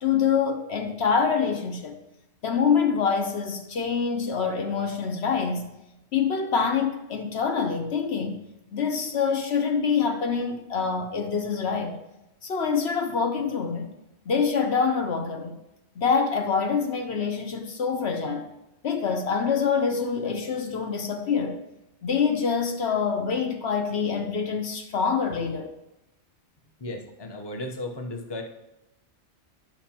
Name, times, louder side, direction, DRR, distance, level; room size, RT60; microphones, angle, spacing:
voice 1, 0.0-2.0 2.4-5.7 6.1-8.4 8.7-12.0 12.4-13.9 14.3-15.6 16.0-18.5 18.8-21.6 22.0-25.7, left 6 dB, 70° left, 1.1 m, -25 dB
voice 2, 26.8-28.4, left 2 dB, 25° left, 0.9 m, -35 dB
11.0 x 5.9 x 2.9 m
omnidirectional pair, 1.2 m